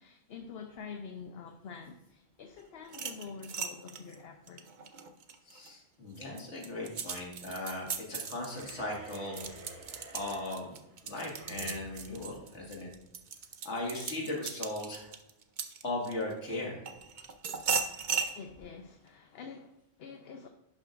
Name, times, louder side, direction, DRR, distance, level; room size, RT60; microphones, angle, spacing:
voice 1, 0.0-4.6 18.3-20.5, left 5 dB, 65° left, 0.9 m, -46 dB
sound 1, 2.8-5.7 6.2-16.3 16.9-18.3, right 6 dB, 50° right, 0.7 m, -37 dB
voice 2, 5.5-9.5 10.1-10.7 11.0-12.9 13.6-15.1 15.8-16.8, left 2 dB, 85° left, 2.4 m, -38 dB
sound 2, 8.5-13.2, right 1 dB, 85° right, 1.5 m, -51 dB
11.0 x 6.0 x 2.5 m
omnidirectional pair, 1.1 m